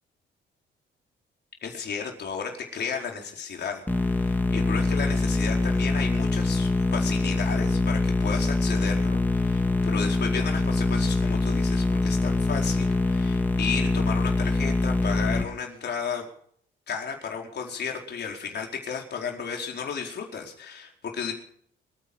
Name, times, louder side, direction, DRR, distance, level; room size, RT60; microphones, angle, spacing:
voice 1, 1.6-16.2 16.9-21.3, left 6 dB, 55° left, 1 dB, 4.5 m, -33 dB
sound 1, 3.9-15.4, left 2 dB, 10° left, 2.5 m, -24 dB
27.0 x 9.5 x 5.2 m, 0.64 s
cardioid pair, 90°, 20 cm